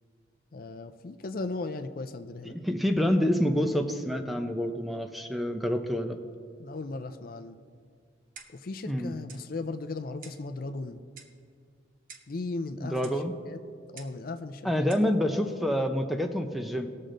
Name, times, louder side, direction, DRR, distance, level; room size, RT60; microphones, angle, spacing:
voice 1, 0.5-2.5 6.6-7.6 8.5-11.0 12.3-13.1 13.5-13.6 13.9-14.9, left 3 dB, 50° left, 8 dB, 0.5 m, -37 dB
voice 2, 2.4-6.2 8.9-9.1 12.8-13.3 14.6-16.9, equal, ahead, 6 dB, 0.5 m, -27 dB
Clock, 8.4-8.7 9.3-9.5 10.2-10.5 11.2-11.4 12.1-12.4 13.0-13.2 14.0-14.2 14.9-15.1, right 6 dB, 45° right, 0.8 m, -49 dB
19.0 x 6.5 x 3.8 m, 2.1 s
head